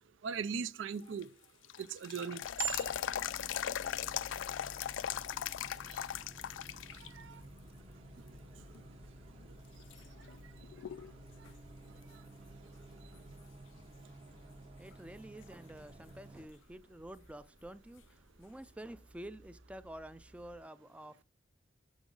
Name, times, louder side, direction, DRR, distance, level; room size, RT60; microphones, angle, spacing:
voice 1, 0.2-1.3 1.8-3.1 5.9-6.0 7.1-7.4, right 7 dB, 75° right, 0.4 m, -38 dB
sound 1, 1.0-7.1 7.5-7.6 8.3-8.8 9.3-9.4 9.9-11.1 11.4-11.5 14.9-15.0 18.0-18.1, left 10 dB, 75° left, 0.3 m, -39 dB
sound 2, 2.4-20.6, left 1 dB, 60° right, 1.3 m, -59 dB
Bus, 2.6-16.5, right 1 dB, 30° right, 0.8 m, -55 dB
voice 2, 14.8-21.2, right 1 dB, 5° right, 0.3 m, -49 dB
6.4 x 6.0 x 3.8 m
head